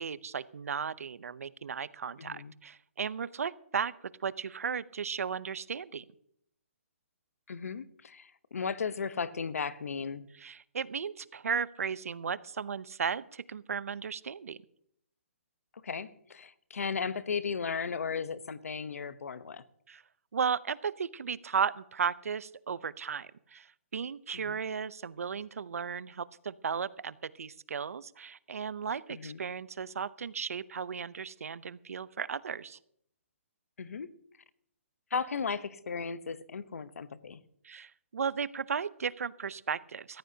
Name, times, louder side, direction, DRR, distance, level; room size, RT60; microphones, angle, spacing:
voice 1, 0.0-3.9 4.2-6.0 10.4-14.6 19.9-20.0 20.3-32.8 37.6-40.2, right 6 dB, 80° right, 18 dB, 0.6 m, -35 dB
voice 2, 2.2-2.5 7.5-10.3 15.8-19.6 24.3-24.6 29.1-29.4 33.8-34.1 35.1-37.4, left 5 dB, 85° left, 14 dB, 0.9 m, -36 dB
18.0 x 14.5 x 2.8 m, 0.68 s
hypercardioid pair, 175°, 8 cm